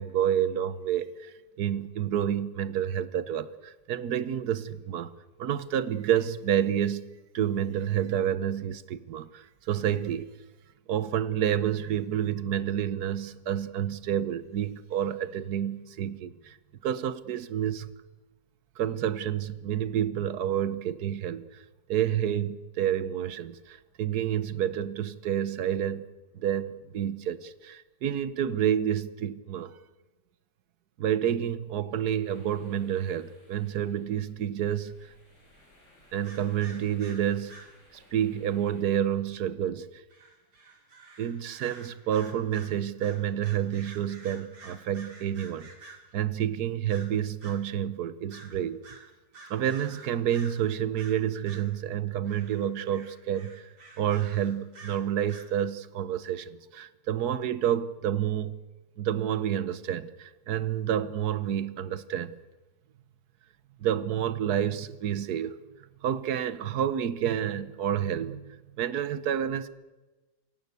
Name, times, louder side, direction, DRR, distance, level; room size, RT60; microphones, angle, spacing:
voice 1, 0.0-7.1 7.3-10.3 10.9-16.6 16.8-17.9 18.8-21.6 21.9-26.1 26.3-29.7 31.0-34.9 36.1-37.5 37.9-39.9 41.2-49.1 49.5-53.7 54.0-58.6 59.0-62.4 63.8-65.6 66.0-69.7, right 10 dB, 75° right, 1.5 m, -29 dB
sound 1, 32.2-38.8, left 1 dB, 85° left, 8.0 m, -60 dB
sound 2, 36.2-37.8 40.1-46.2 46.9-47.6 48.3-48.6 48.8-50.6 51.0-51.7 52.2-55.5, right 3 dB, 90° right, 3.4 m, -50 dB
28.0 x 16.5 x 8.3 m
omnidirectional pair, 1.7 m